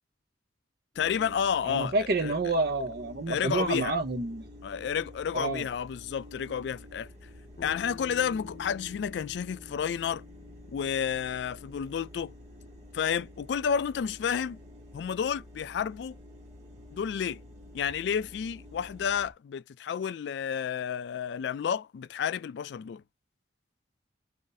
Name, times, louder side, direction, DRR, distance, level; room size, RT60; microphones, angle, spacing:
sound 1, 0.9-19.3, left 1 dB, 40° right, 1.3 m, -49 dB
voice 1, 1.0-1.9 2.2-2.3 3.3-3.9 4.6-7.1 7.6-10.2 10.7-12.3 12.9-14.6 14.9-16.2 16.9-17.4 17.7-23.0, left 7 dB, 65° left, 0.3 m, -31 dB
voice 2, 1.6-4.5 5.3-5.7, right 2 dB, 55° right, 0.7 m, -29 dB
Bass guitar, 7.6-11.8, left 5 dB, 45° left, 0.7 m, -50 dB
2.6 x 2.5 x 3.9 m
head